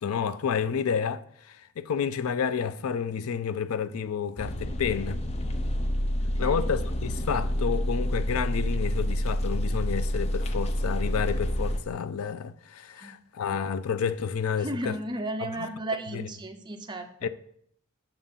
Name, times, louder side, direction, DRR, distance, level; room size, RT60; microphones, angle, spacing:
voice 1, 0.0-5.2 6.4-15.0 15.4-15.7 16.1-16.2 17.2-17.3, left 6 dB, 85° left, 0.4 m, -30 dB
sound 1, 4.4-11.8, equal, 30° left, 0.5 m, -28 dB
voice 2, 6.2-6.7 13.0-13.1 14.6-17.3, right 1 dB, 20° right, 0.5 m, -34 dB
5.9 x 3.7 x 5.6 m
head